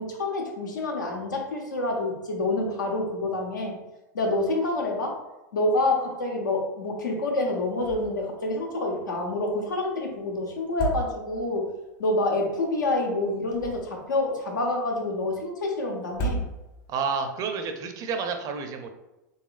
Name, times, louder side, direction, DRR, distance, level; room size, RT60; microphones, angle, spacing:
voice 1, 0.0-3.8 4.1-5.2 5.5-11.7 12.0-16.4, left 2 dB, 75° left, 0 dB, 0.9 m, -27 dB
sound 1, 7.8-8.3 8.6-8.7 10.6-11.6 13.3-14.2 16.0-17.0, right 2 dB, 45° left, 1.3 m, -33 dB
voice 2, 16.9-18.9, right 5 dB, 35° right, 6 dB, 0.5 m, -30 dB
4.0 x 3.5 x 2.4 m, 1.0 s
figure-of-eight pair, 90°, 10 cm